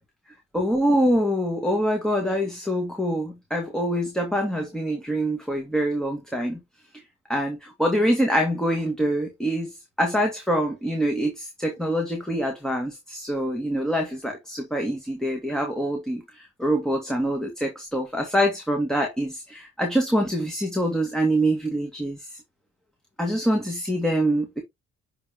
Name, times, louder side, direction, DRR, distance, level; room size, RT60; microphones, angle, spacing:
voice 1, 0.5-6.6 7.3-9.7 10.0-22.4 23.2-24.6, equal, ahead, 1.9 m, -25 dB
9.4 x 3.5 x 3.0 m
supercardioid pair, 55°, 34 cm